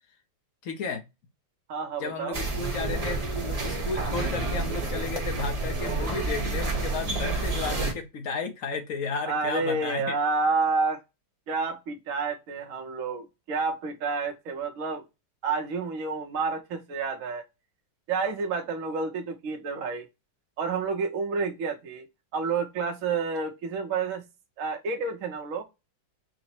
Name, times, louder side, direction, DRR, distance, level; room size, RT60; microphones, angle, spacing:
voice 1, 0.6-1.0 2.0-3.2 3.5-10.1, left 4 dB, 65° left, 0.9 m, -33 dB
voice 2, 1.7-2.4 9.2-11.0 11.5-15.0 15.4-17.4 18.1-20.1 20.6-22.1 22.3-24.2 24.6-25.6, right 4 dB, 65° right, 0.8 m, -29 dB
sound 1, 2.3-7.9, right 3 dB, 30° right, 0.7 m, -29 dB
4.8 x 2.0 x 4.3 m
omnidirectional pair, 2.0 m